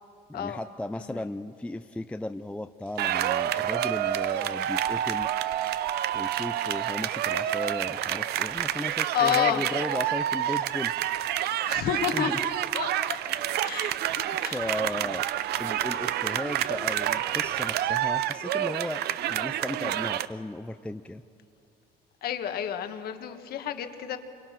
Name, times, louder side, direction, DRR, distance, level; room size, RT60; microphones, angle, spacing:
voice 1, 0.3-5.4 6.1-11.1 12.1-12.4 14.2-15.3 15.6-19.0 19.3-21.2, left 1 dB, 5° left, 8 dB, 0.5 m, -36 dB
sound 1, 2.9-18.0, right 3 dB, 50° right, 3.9 m, -54 dB
sound 2, 3.0-20.3, right 12 dB, 70° right, 0.7 m, -28 dB
voice 2, 9.1-9.6 11.6-12.3 12.7-14.6 22.2-24.2, left 9 dB, 65° left, 7 dB, 1.6 m, -30 dB
27.0 x 23.5 x 5.9 m, 2.5 s
cardioid pair, 110°, 17 cm